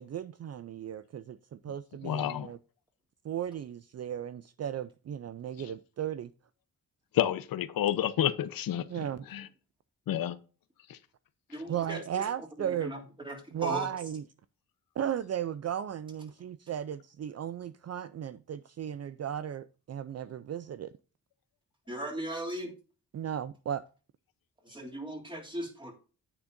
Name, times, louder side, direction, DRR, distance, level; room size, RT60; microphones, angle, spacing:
voice 1, 0.0-2.6 3.2-6.3 8.9-9.2 11.7-12.9 13.5-14.2 15.0-20.9 23.1-23.8, right 9 dB, 50° right, 0.5 m, -35 dB
voice 2, 2.0-2.5 7.1-8.8 9.3-9.5 10.1-10.4 10.9-11.0, left 11 dB, 85° left, 0.8 m, -29 dB
voice 3, 11.5-12.2 12.6-13.0 13.2-13.9 21.9-22.7 24.6-25.9, right 1 dB, 15° right, 3.3 m, -38 dB
9.9 x 8.9 x 2.6 m
cardioid pair, 95°, 34 cm